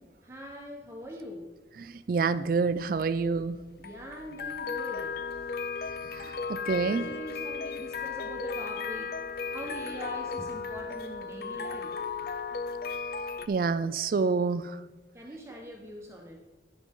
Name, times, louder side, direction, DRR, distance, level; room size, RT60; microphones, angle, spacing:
voice 1, 0.2-1.5 3.8-5.2 6.8-9.1 9.4-12.0 15.1-16.4, equal, 15° right, -1 dB, 1.2 m, -43 dB
voice 2, 1.8-3.6 6.2-7.1 13.5-14.8, right 4 dB, 50° right, 14 dB, 0.4 m, -28 dB
sound 1, 2.4-13.5, left 5 dB, 55° left, 0.5 m, -36 dB
11.0 x 10.5 x 3.7 m, 1.2 s
head